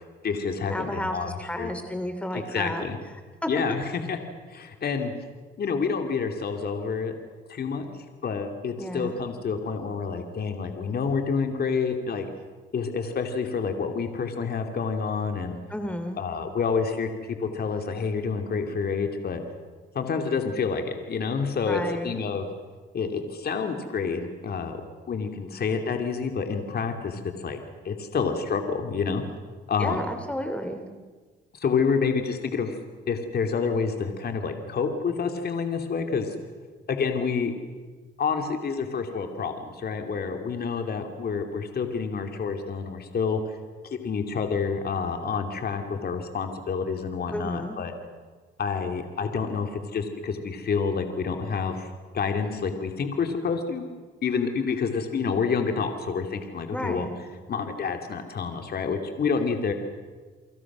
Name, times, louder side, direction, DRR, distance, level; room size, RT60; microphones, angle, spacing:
voice 1, 0.0-1.7 2.3-3.0 3.5-4.2 4.5-5.1 5.6-7.1 7.5-7.9 8.2-12.3 12.7-15.6 16.2-17.1 17.4-19.4 19.9-22.5 22.9-24.8 25.1-27.6 27.8-29.2 29.7-30.0 31.5-32.8 33.1-36.3 36.9-37.5 38.2-43.6 43.8-47.9 48.6-51.9 52.1-53.8 54.2-57.1 57.5-59.7, left 5 dB, 50° left, 5 dB, 2.8 m, -28 dB
voice 2, 0.7-2.8 3.4-3.5 8.8-9.2 15.7-16.2 21.6-22.2 29.8-30.8 47.3-47.8 56.7-57.1, equal, 5° left, 7 dB, 2.9 m, -32 dB
29.5 x 24.0 x 6.3 m, 1.4 s
cardioid pair, 90°, 20 cm